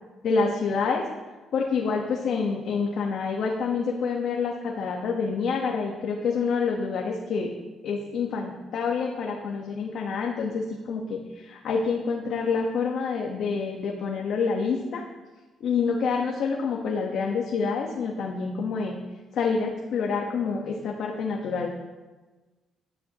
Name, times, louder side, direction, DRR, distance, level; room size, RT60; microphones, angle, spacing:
voice 1, 0.2-1.0 1.5-7.5 7.8-15.0 15.6-19.0 19.3-21.7, left 5 dB, 70° left, 0 dB, 1.5 m, -27 dB
14.0 x 11.5 x 3.1 m, 1.2 s
cardioid pair, 90°, 0 cm